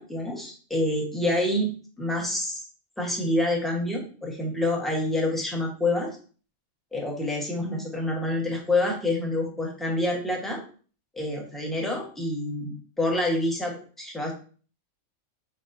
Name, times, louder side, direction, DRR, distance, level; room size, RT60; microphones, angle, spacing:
voice 1, 0.0-2.6 3.0-6.2 6.9-10.6 11.1-14.3, left 1 dB, ahead, -1 dB, 1.1 m, -27 dB
4.7 x 4.2 x 2.6 m, 0.39 s
omnidirectional pair, 1.3 m